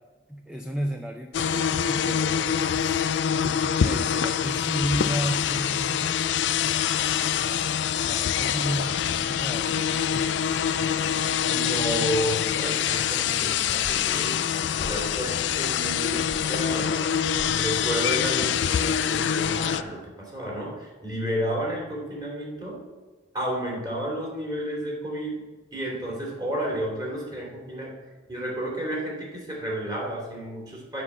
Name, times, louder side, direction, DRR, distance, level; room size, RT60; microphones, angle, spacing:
voice 1, 0.3-3.0 3.4-6.2 7.3-12.1, equal, 5° right, 3 dB, 0.5 m, -34 dB
sound 1, 1.3-19.8, left 8 dB, 65° left, 0.4 m, -25 dB
voice 2, 11.5-14.5 14.9-17.0 17.4-22.8 23.3-25.4 25.7-28.0 28.3-31.0, equal, 20° right, -3 dB, 2.9 m, -31 dB
sound 2, 13.8-14.2 14.8-15.4 15.8-15.9 16.3-16.7 17.4-18.1 18.8-19.5, left 1 dB, 10° left, 1.3 m, -41 dB
9.9 x 5.5 x 7.0 m, 1.2 s
head